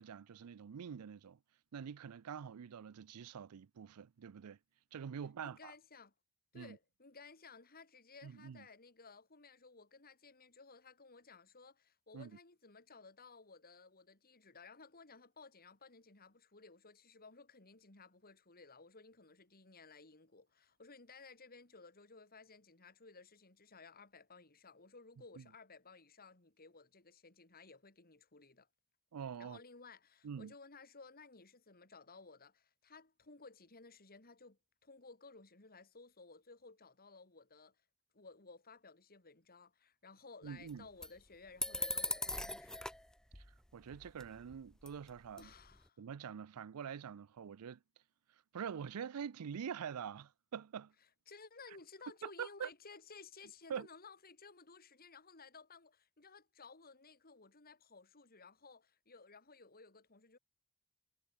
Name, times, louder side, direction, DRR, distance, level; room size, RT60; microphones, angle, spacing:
voice 1, 0.0-1.4 1.7-4.6 4.9-5.7 6.5-6.8 8.2-8.6 12.1-12.3 25.4-25.5 29.1-29.6 30.2-30.5 40.4-40.9 43.4-43.5 43.7-45.5 46.0-47.8 48.5-50.9 52.2-52.7 53.7-53.9, right 7 dB, 85° right, 0.4 m, -45 dB
voice 2, 5.4-6.1 6.5-28.7 29.4-37.8 38.1-42.9 45.4-46.0 51.3-60.4, left 4 dB, 45° left, 2.8 m, -57 dB
sound 1, 40.7-40.8 41.0-41.1 41.6-43.1 43.3-43.5 43.9-44.5 44.8-45.1 45.4-45.8, left 1 dB, 5° left, 0.5 m, -40 dB
head